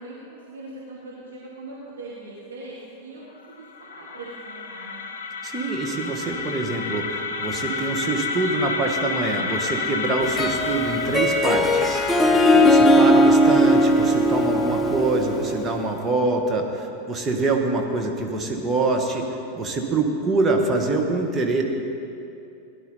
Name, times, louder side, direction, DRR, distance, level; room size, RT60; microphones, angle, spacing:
voice 1, 0.0-5.1, right 2 dB, 65° right, -7 dB, 2.4 m, -40 dB
sound 1, 3.5-15.5, left 4 dB, 60° left, 0.8 m, -31 dB
voice 2, 5.4-12.0 12.5-19.3 19.5-21.6, right 3 dB, 20° right, 1 dB, 1.6 m, -25 dB
Harp, 10.2-15.8, equal, 10° left, 0.6 m, -18 dB
17.5 x 11.0 x 4.3 m, 2.7 s
figure-of-eight pair, 90°, 0 cm